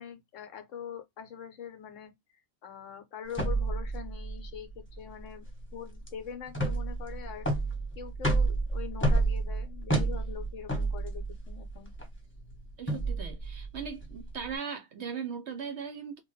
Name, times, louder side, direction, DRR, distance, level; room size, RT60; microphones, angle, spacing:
voice 1, 0.0-2.1 2.6-5.5 5.7-7.5 8.0-11.9, left 7 dB, 65° left, 1.0 m, -43 dB
sound 1, 3.3-14.5, right 2 dB, 10° left, 1.0 m, -31 dB
voice 2, 12.8-16.2, right 6 dB, 65° right, 0.7 m, -38 dB
2.9 x 2.2 x 3.0 m
omnidirectional pair, 1.5 m